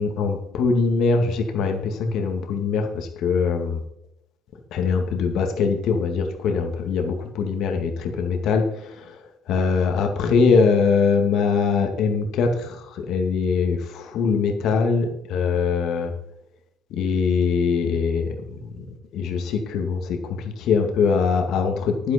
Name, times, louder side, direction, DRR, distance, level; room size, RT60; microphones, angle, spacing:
voice 1, 0.0-3.8 4.7-9.2 9.5-16.1 16.9-18.7 19.1-22.1, left 5 dB, 60° left, 4 dB, 2.2 m, -22 dB
11.0 x 10.5 x 4.4 m, 0.78 s
cardioid pair, 160°, 0 cm